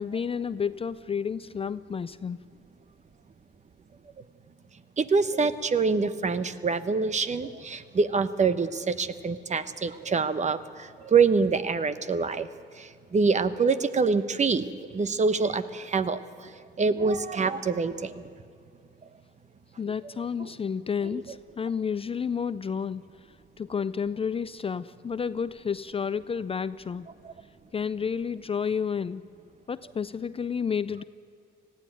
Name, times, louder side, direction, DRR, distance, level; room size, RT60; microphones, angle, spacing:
voice 1, 0.0-2.4 19.8-23.0 23.6-27.1 27.7-29.2 29.7-31.0, left 6 dB, 30° left, 15 dB, 0.4 m, -30 dB
voice 2, 5.0-12.5 12.8-16.2 16.8-18.2 20.4-20.5 21.1-21.2 27.2-27.3, right 4 dB, 35° right, 12 dB, 1.0 m, -25 dB
19.0 x 14.5 x 9.3 m, 2.3 s
cardioid pair, 90°, 20 cm